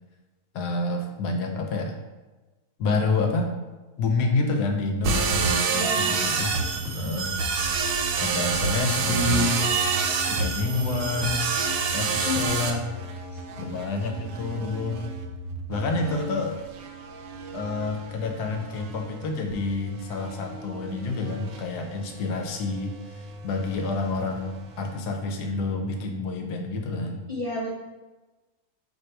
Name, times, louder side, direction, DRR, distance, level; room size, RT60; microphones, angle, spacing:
voice 1, 0.5-2.0 2.8-3.5 4.0-6.5 6.9-7.3 7.7-7.8 8.2-9.6 10.2-11.4 11.9-12.8 13.6-15.0 15.7-16.6 17.5-27.2, left 3 dB, 85° left, 4 dB, 1.2 m, -28 dB
sound 1, 5.0-12.7, right 4 dB, 85° right, 1.1 m, -26 dB
voice 2, 5.7-6.1 12.2-12.7 13.3-13.6 27.3-27.7, left 2 dB, 35° right, -6 dB, 0.7 m, -31 dB
sound 2, 6.3-25.9, right 2 dB, 70° right, 0.7 m, -40 dB
4.6 x 2.6 x 4.4 m, 1.2 s
omnidirectional pair, 1.7 m